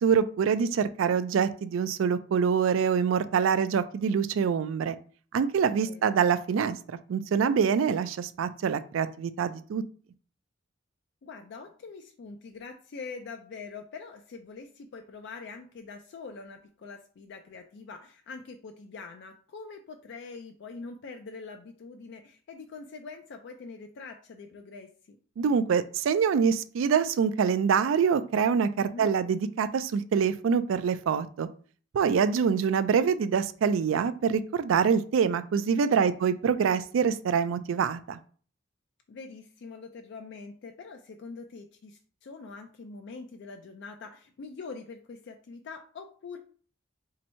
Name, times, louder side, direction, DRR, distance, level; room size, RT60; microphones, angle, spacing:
voice 1, 0.0-4.9 5.3-6.8 7.1-9.8 25.4-31.5 31.9-38.2, right 6 dB, 75° right, 12 dB, 0.3 m, -25 dB
voice 2, 5.7-6.1 11.2-25.2 28.8-29.1 36.0-36.3 39.1-46.4, left 4 dB, 60° left, 5 dB, 0.4 m, -44 dB
2.8 x 2.6 x 4.2 m, 0.42 s
head